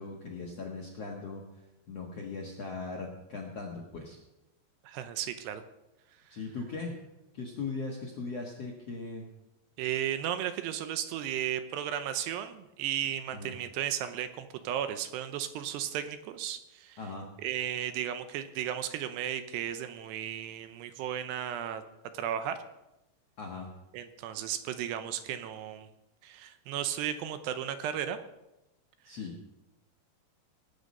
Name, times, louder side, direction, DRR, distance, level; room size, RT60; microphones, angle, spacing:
voice 1, 0.0-1.4 1.9-4.2 6.3-7.0 7.3-9.2 13.3-13.5 17.0-17.2 23.4-23.7 29.0-29.3, left 4 dB, 60° left, -1 dB, 1.6 m, -39 dB
voice 2, 4.8-5.6 9.8-17.0 17.4-21.8 22.1-22.6 23.9-25.9 26.2-28.2 29.1-29.2, right 10 dB, 80° right, 10 dB, 2.8 m, -34 dB
18.5 x 9.0 x 5.4 m, 0.93 s
omnidirectional pair, 5.1 m